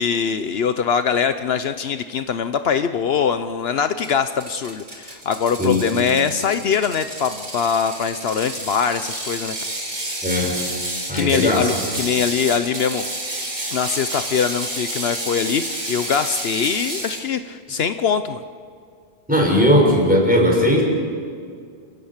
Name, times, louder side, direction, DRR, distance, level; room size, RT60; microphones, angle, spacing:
voice 1, 0.0-9.6 11.1-13.1 13.7-18.4, left 7 dB, 70° left, 10 dB, 1.0 m, -22 dB
Ratchet pawl, 4.0-17.2, right 1 dB, 80° right, 4.8 m, -30 dB
voice 2, 10.2-10.6 11.1-11.7 19.3-20.8, equal, 10° right, -1 dB, 5.7 m, -17 dB
28.5 x 17.0 x 7.3 m, 2.2 s
omnidirectional pair, 1.1 m